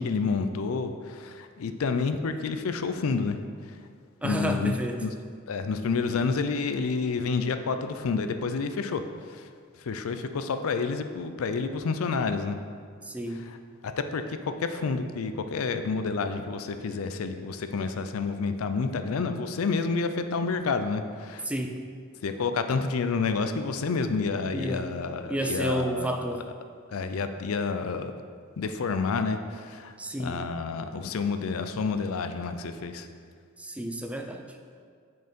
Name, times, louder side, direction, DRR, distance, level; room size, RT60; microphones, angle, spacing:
voice 1, 0.0-3.9 4.2-5.1 5.5-9.5 9.8-12.6 13.3-13.6 13.8-21.5 22.2-26.1 26.9-28.1 28.6-29.9 30.2-33.1, left 4 dB, 80° left, 9 dB, 0.4 m, -29 dB
voice 2, 4.2-5.0 13.0-13.5 21.5-21.8 24.5-24.9 25.3-26.5 30.0-30.4 33.6-34.4, right 1 dB, 5° right, 4 dB, 0.4 m, -31 dB
6.4 x 4.5 x 5.2 m, 2.1 s
head